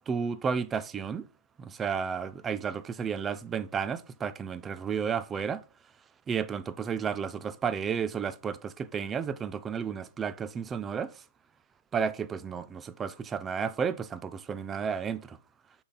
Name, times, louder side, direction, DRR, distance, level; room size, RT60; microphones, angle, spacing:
voice 1, 0.1-1.2 1.6-5.6 6.3-11.1 11.9-15.4, right 6 dB, 15° right, 0.4 m, -32 dB
6.8 x 3.9 x 4.1 m
hypercardioid pair, 150°, 0 cm